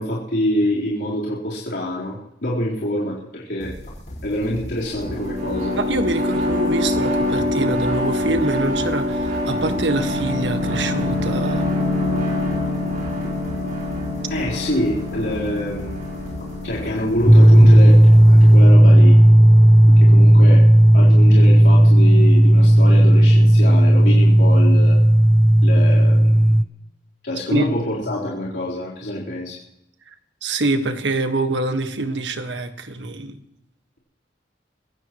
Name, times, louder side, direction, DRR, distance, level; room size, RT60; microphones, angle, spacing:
voice 1, 0.0-3.8 4.2-5.8 14.3-16.0 16.6-19.2 20.0-20.7 20.9-25.0 25.6-26.4 27.2-29.6, left 1 dB, 70° left, -6 dB, 4.0 m, -25 dB
sound 1, 3.6-19.1, equal, 50° left, 5.0 m, -37 dB
sound 2, 4.8-20.2, left 1 dB, 55° right, 5.3 m, -25 dB
voice 2, 5.8-11.7 27.5-27.7 30.4-33.4, right 2 dB, 85° right, 7 dB, 1.6 m, -25 dB
sound 3, 17.3-26.6, right 1 dB, 10° right, 0.6 m, -11 dB
24.5 x 16.0 x 3.1 m, 0.82 s
head